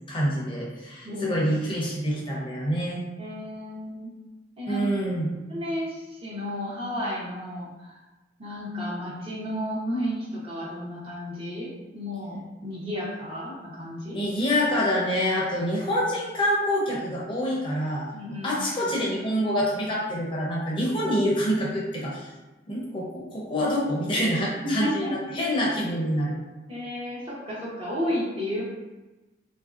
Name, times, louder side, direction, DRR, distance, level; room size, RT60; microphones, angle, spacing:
voice 1, 0.1-3.0 4.7-5.3 14.1-18.1 18.4-22.3 22.7-26.3, equal, 30° left, -5 dB, 0.5 m, -26 dB
voice 2, 1.0-1.4 3.2-4.1 4.6-4.9 5.5-8.0 8.4-14.2 18.1-18.5 18.8-18.9 24.6-25.1 26.7-28.6, equal, 30° right, -6 dB, 0.7 m, -32 dB
3.1 x 2.6 x 2.4 m, 1.1 s
head